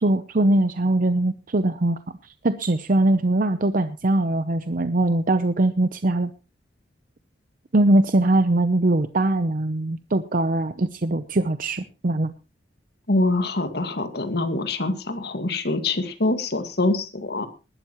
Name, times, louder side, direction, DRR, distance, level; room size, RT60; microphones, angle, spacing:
voice 1, 0.0-2.0 2.4-6.3 7.7-12.3, right 2 dB, 50° right, 10 dB, 0.7 m, -21 dB
voice 2, 13.1-17.5, left 2 dB, 65° left, 8 dB, 2.0 m, -24 dB
20.0 x 12.0 x 3.0 m, 0.30 s
head